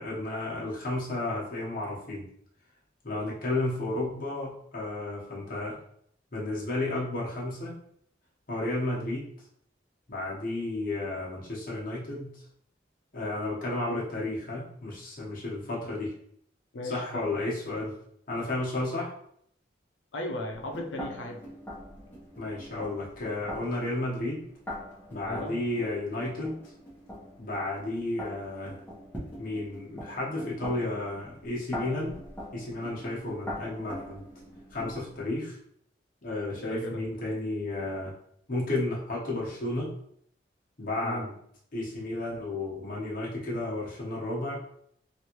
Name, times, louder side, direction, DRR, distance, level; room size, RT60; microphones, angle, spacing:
voice 1, 0.0-2.3 3.0-5.8 6.3-7.7 8.5-9.3 10.1-12.4 13.1-16.1 16.8-18.0 18.3-19.1 22.4-24.4 25.1-26.6 27.4-28.8 29.4-32.2 32.5-34.2 34.7-35.6 36.2-38.1 38.5-39.9 40.8-41.3 41.7-44.6, left 2 dB, 50° left, -5 dB, 1.0 m, -32 dB
voice 2, 16.7-17.3 20.1-21.4 25.2-25.6 36.6-37.0 41.0-41.3, left 1 dB, 90° left, 1 dB, 0.6 m, -36 dB
sound 1, 20.5-35.2, left 1 dB, 10° left, 0.9 m, -43 dB
3.1 x 2.6 x 3.0 m, 0.69 s
head